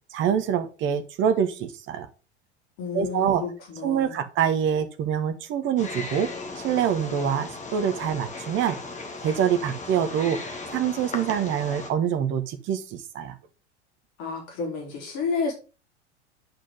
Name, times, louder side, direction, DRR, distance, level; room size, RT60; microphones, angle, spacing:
voice 1, 0.1-2.1 2.9-3.4 3.8-6.3 6.6-8.8 9.2-13.3, right 8 dB, 35° right, 8 dB, 1.2 m, -25 dB
voice 2, 2.8-4.2 14.2-15.5, left 4 dB, 45° left, 1 dB, 4.0 m, -30 dB
Wild animals, 5.8-11.9, left 3 dB, 20° left, 2.0 m, -37 dB
9.0 x 5.2 x 5.4 m, 0.33 s
figure-of-eight pair, 80°, 35 cm